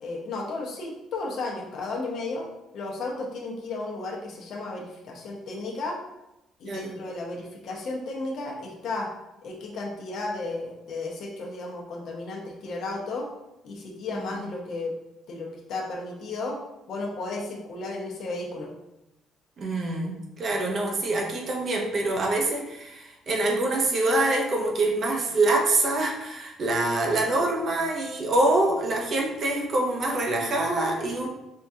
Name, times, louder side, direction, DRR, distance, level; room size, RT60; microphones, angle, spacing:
voice 1, 0.0-2.4 2.7-6.0 6.6-9.1 9.4-13.3 13.6-14.9 15.3-16.6 16.9-18.7, left 2 dB, 60° left, -1 dB, 0.8 m, -33 dB
voice 2, 19.6-31.3, right 2 dB, 40° right, 1 dB, 0.6 m, -25 dB
4.5 x 2.3 x 2.7 m, 0.91 s
cardioid pair, 135°, 0 cm